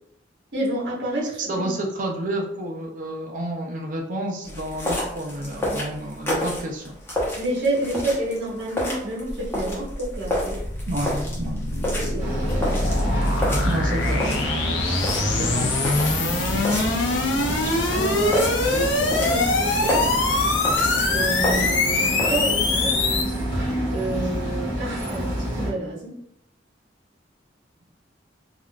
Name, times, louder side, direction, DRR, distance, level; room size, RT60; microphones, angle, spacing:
voice 1, 0.5-1.5 7.4-10.6 11.9-12.3 17.9-20.1 21.1-23.0 23.9-25.3 25.6-26.1, right 1 dB, 65° right, -5 dB, 1.1 m, -28 dB
voice 2, 1.5-6.9 10.9-11.6 13.6-14.6 15.3-15.8, right 1 dB, 45° right, 1 dB, 0.5 m, -30 dB
sound 1, 4.4-22.4, left 1 dB, 15° left, 0.8 m, -31 dB
sound 2, 9.3-23.2, left 3 dB, 80° left, 0.5 m, -24 dB
sound 3, 12.2-25.7, equal, 15° right, 1.1 m, -28 dB
3.5 x 2.4 x 2.2 m, 0.71 s
head